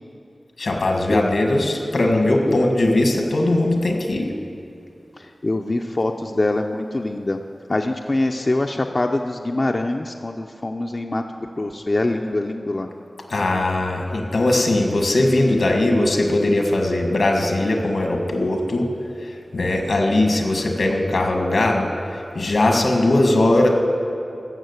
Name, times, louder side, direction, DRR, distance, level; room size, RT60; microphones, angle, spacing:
voice 1, 0.6-4.3 13.3-18.8 19.5-21.9 22.3-23.7, left 2 dB, 85° left, 2 dB, 1.6 m, -19 dB
voice 2, 5.2-7.4 7.7-12.9, left 2 dB, 40° left, 3 dB, 0.5 m, -24 dB
14.0 x 6.3 x 8.1 m, 2.6 s
wide cardioid pair, 80°, 0 cm